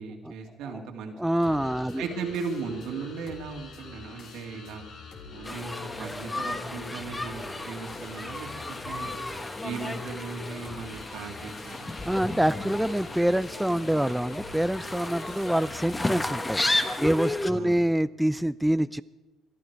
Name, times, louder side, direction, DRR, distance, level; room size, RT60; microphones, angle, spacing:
voice 1, 0.0-1.1 2.0-4.9 5.3-9.2 9.6-11.9 16.7-16.8 17.1-17.8, right 5 dB, 75° right, 3 dB, 2.3 m, -37 dB
voice 2, 1.2-2.0 12.0-16.6 17.0-19.0, right 1 dB, 5° right, 15 dB, 0.4 m, -26 dB
sound 1, 1.4-16.2, left 4 dB, 65° left, 2.8 m, -44 dB
sound 2, 5.4-17.5, left 2 dB, 15° left, 1.3 m, -33 dB
21.5 x 12.5 x 4.7 m, 1.2 s
supercardioid pair, 70°, 0 cm